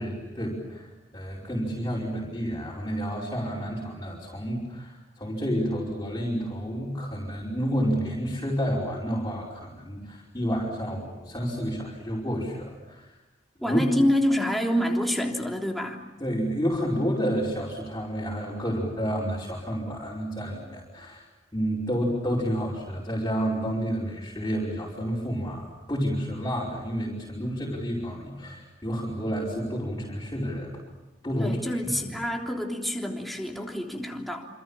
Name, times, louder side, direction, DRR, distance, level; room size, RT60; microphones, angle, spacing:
voice 1, 0.0-13.2 13.6-13.8 16.2-21.3 21.5-30.8 31.2-32.1, equal, 20° left, -6 dB, 5.3 m, -30 dB
voice 2, 13.6-16.0 31.4-34.5, equal, ahead, 0 dB, 3.4 m, -27 dB
27.5 x 27.0 x 7.4 m, 1.1 s
head